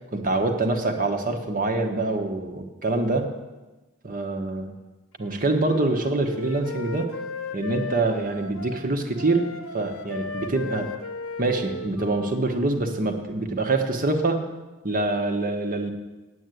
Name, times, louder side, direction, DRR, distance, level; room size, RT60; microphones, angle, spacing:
voice 1, 0.1-3.2 4.0-4.7 5.2-7.1 7.5-10.9 11.4-14.4 14.8-15.9, right 2 dB, 40° right, 5 dB, 1.3 m, -25 dB
Wind instrument woodwind instrument, 5.2-8.8 9.2-12.8, left 3 dB, 85° left, 1.0 m, -36 dB
9.0 x 8.2 x 9.2 m, 1.1 s
head